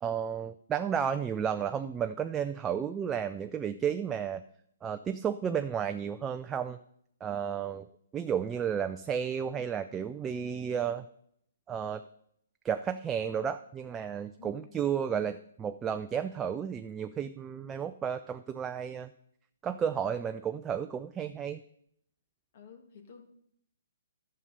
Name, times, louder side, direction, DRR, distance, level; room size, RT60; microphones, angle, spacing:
voice 1, 0.0-4.4 4.8-6.8 7.2-7.9 8.1-11.1 11.7-12.0 12.6-19.1 19.6-21.6, right 8 dB, 15° right, 8 dB, 0.4 m, -32 dB
voice 2, 14.4-14.9 22.5-23.2, left 6 dB, 50° left, 5 dB, 1.8 m, -52 dB
11.0 x 6.7 x 5.3 m, 0.71 s
figure-of-eight pair, 130°, 0 cm